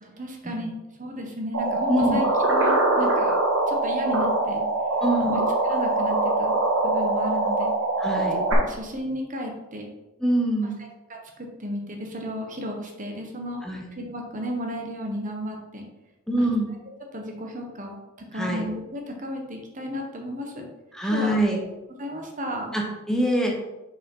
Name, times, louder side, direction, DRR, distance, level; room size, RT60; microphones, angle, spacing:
voice 1, 0.0-3.3 3.7-4.7 5.2-6.6 6.8-7.7 8.2-8.3 8.6-9.9 11.1-13.6 14.0-15.9 16.4-16.5 17.1-18.0 18.3-20.7 21.1-21.4 22.0-22.8, equal, 40° right, 2 dB, 1.3 m, -33 dB
sound 1, 1.5-8.5, right 2 dB, 75° right, 1.9 m, -23 dB
voice 2, 1.9-2.2 5.0-5.4 8.0-8.4 10.2-10.8 13.6-13.8 16.3-16.7 18.3-18.6 20.9-21.6 22.7-23.6, equal, 5° left, -1 dB, 1.1 m, -24 dB
6.2 x 4.8 x 5.5 m, 0.99 s
head